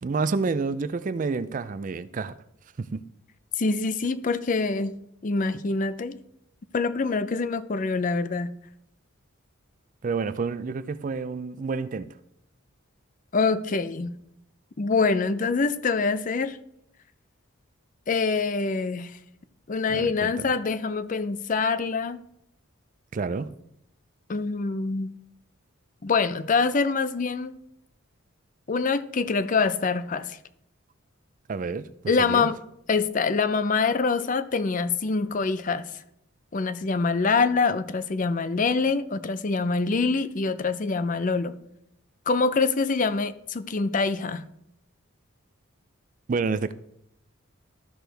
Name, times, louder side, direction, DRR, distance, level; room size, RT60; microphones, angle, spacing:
voice 1, 0.0-2.3 2.8-3.0 10.0-12.1 19.9-20.3 23.1-23.5 31.5-31.9 32.2-32.5 46.3-46.7, right 4 dB, 40° right, 0.4 m, -29 dB
voice 2, 3.6-4.9 5.2-6.2 6.7-8.5 13.3-14.1 14.8-16.6 18.1-19.2 19.7-22.2 24.3-25.1 26.0-27.6 28.7-30.4 32.1-32.6 32.9-35.9 36.5-41.5 42.3-44.4, left 4 dB, 40° left, 0.5 m, -25 dB
13.5 x 6.2 x 3.4 m
head